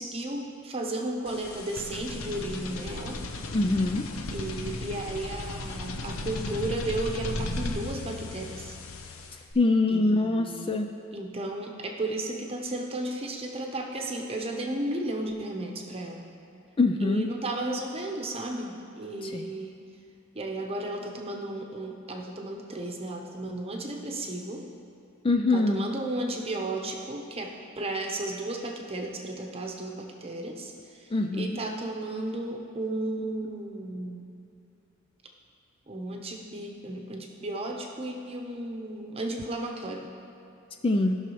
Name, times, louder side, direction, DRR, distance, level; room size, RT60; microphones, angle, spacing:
voice 1, 0.0-3.2 4.3-8.8 9.9-10.8 11.1-16.3 17.0-19.8 20.3-24.7 25.5-30.7 31.0-34.3 35.9-40.1, right 2 dB, 30° right, 1 dB, 0.9 m, -34 dB
sound 1, 1.3-9.5, left 2 dB, 75° left, 0.7 m, -36 dB
voice 2, 3.5-4.0 9.6-10.9 16.8-17.3 19.2-19.5 25.2-25.8 31.1-31.6 40.8-41.2, left 2 dB, 25° left, 4 dB, 0.3 m, -24 dB
16.0 x 6.0 x 3.1 m, 2.7 s
head